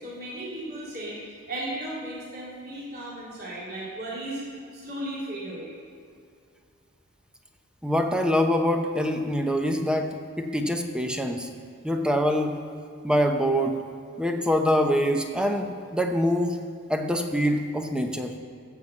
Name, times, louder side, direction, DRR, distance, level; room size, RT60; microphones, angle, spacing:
voice 1, 0.0-4.4 4.7-5.7, right 1 dB, 45° right, -7 dB, 3.3 m, -35 dB
voice 2, 7.8-10.1 10.4-11.5 11.8-12.6 13.0-13.8 14.2-16.6 16.9-18.3, equal, 5° right, 4 dB, 0.7 m, -24 dB
14.5 x 5.8 x 7.4 m, 2.3 s
head